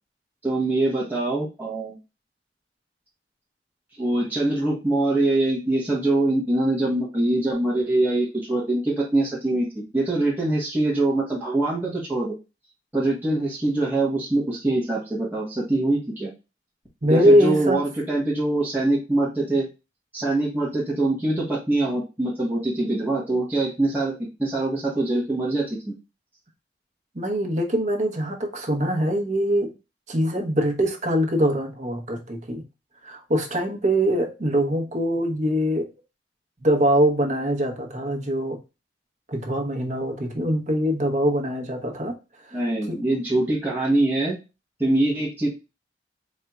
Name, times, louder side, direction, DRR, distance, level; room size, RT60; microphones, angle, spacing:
voice 1, 0.4-2.0 4.0-12.3 12.9-16.3 17.1-19.7 20.1-25.9 42.5-44.4 44.8-45.5, right 2 dB, 10° right, 1.2 m, -23 dB
voice 2, 17.0-17.8 27.1-29.7 30.1-32.6 33.0-35.9 36.6-38.6 39.3-42.2 42.4-42.6 42.9-43.0, equal, 40° right, 0.9 m, -23 dB
4.1 x 3.6 x 2.3 m
head